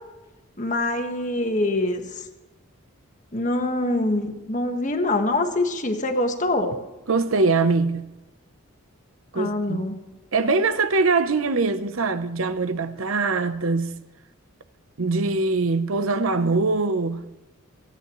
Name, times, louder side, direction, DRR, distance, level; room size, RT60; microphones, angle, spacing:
voice 1, 0.6-2.2 3.3-6.8 9.3-9.9, left 2 dB, 35° left, 1.5 m, -24 dB
voice 2, 7.1-8.1 9.3-9.9 10.3-13.9 15.0-17.2, right 3 dB, 70° right, 0.8 m, -22 dB
28.5 x 9.6 x 3.1 m
head